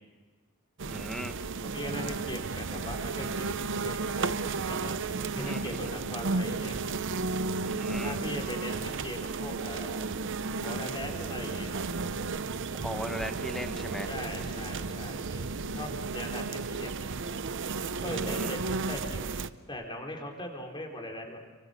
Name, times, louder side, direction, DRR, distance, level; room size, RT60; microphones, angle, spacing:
sound 1, 0.8-19.5, right 4 dB, 60° right, 0.8 m, -33 dB
voice 1, 0.9-1.4 5.4-5.8 7.6-8.1 12.8-14.1 18.1-18.5, equal, ahead, 7 dB, 1.4 m, -38 dB
voice 2, 1.7-6.8 7.9-10.2 10.6-11.8 14.0-16.9 18.0-19.3 19.7-21.4, left 1 dB, 25° left, 2 dB, 4.3 m, -40 dB
30.0 x 24.0 x 6.8 m, 1.3 s
head